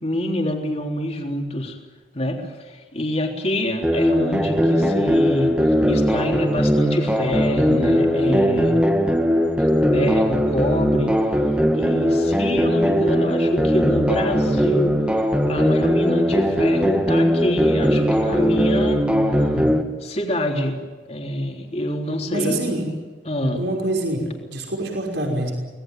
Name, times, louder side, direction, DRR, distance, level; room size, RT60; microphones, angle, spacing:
voice 1, 0.0-1.8 2.1-8.8 9.9-11.1 11.7-15.0 15.5-19.0 20.0-20.8 21.1-22.6 23.2-23.6, left 1 dB, 35° left, 2 dB, 3.6 m, -26 dB
sound 1, 3.8-19.8, equal, 5° right, 1.8 m, -19 dB
voice 2, 18.7-19.9 22.3-22.8 23.5-25.5, right 1 dB, 75° right, 1 dB, 5.7 m, -26 dB
25.0 x 19.5 x 9.2 m, 1.4 s
head